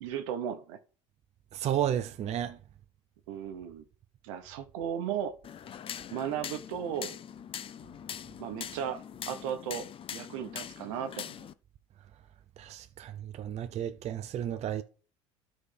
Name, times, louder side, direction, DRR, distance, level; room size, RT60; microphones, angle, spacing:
voice 1, 0.0-0.8 3.3-3.8 4.2-5.3 6.1-7.1 8.4-11.4, right 9 dB, 75° right, 0.9 m, -36 dB
voice 2, 1.5-2.6 12.6-14.8, right 10 dB, 40° right, 0.5 m, -32 dB
sound 1, 5.4-11.5, left 9 dB, 35° left, 0.5 m, -42 dB
12.5 x 4.2 x 3.3 m
hypercardioid pair, 75°, 16 cm